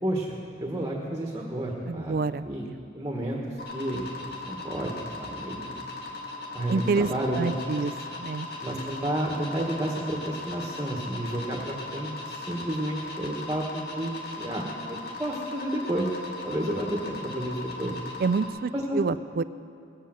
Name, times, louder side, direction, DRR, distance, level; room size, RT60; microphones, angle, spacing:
voice 1, 0.0-2.1 2.4-2.6 2.9-3.4 3.7-5.9 6.5-7.8 8.6-14.1 14.4-16.1 16.4-17.9 18.7-19.0, right 1 dB, 20° right, -2 dB, 1.4 m, -31 dB
voice 2, 1.9-2.8 6.7-7.1 7.4-7.9 8.2-8.5 18.2-19.4, right 4 dB, 50° right, 15 dB, 0.4 m, -27 dB
sound 1, 3.6-18.5, left 3 dB, 55° left, 2.0 m, -38 dB
20.0 x 8.4 x 7.6 m, 2.6 s
head